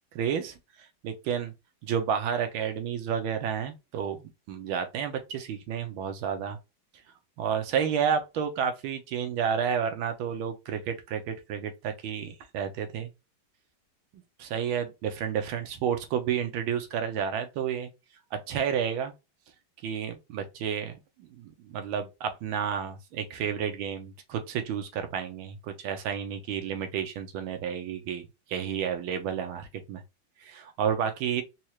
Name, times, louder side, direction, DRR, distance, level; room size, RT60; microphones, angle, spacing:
voice 1, 0.1-1.5 1.8-6.6 7.4-13.1 14.1-17.9 18.3-19.1 19.8-30.0 30.4-31.4, right 8 dB, 85° right, 1.6 m, -31 dB
4.3 x 2.4 x 2.9 m
omnidirectional pair, 2.2 m